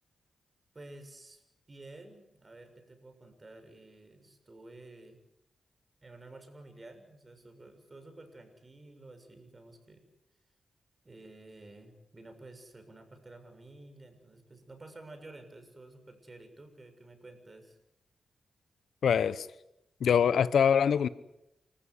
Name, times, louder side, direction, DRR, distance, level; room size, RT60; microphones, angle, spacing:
voice 1, 0.7-1.4 1.7-5.2 6.0-10.0 11.0-17.8, right 2 dB, 35° right, 7 dB, 6.9 m, -51 dB
voice 2, 19.0-19.5 20.0-21.1, left 7 dB, 80° left, 16 dB, 0.9 m, -24 dB
29.0 x 14.5 x 9.8 m, 0.87 s
cardioid pair, 60°, 0 cm